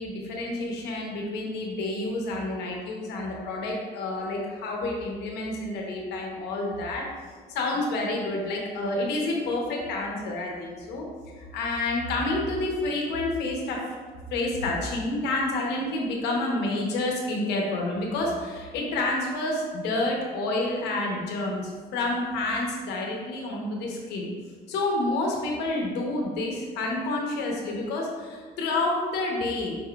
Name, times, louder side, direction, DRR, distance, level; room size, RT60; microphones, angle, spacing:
voice 1, 0.0-7.1 7.5-11.0 11.5-13.9 14.3-24.3 24.7-29.8, left 2 dB, 80° left, 0 dB, 0.9 m, -29 dB
5.3 x 3.6 x 2.3 m, 1.5 s
cardioid pair, 110°, 17 cm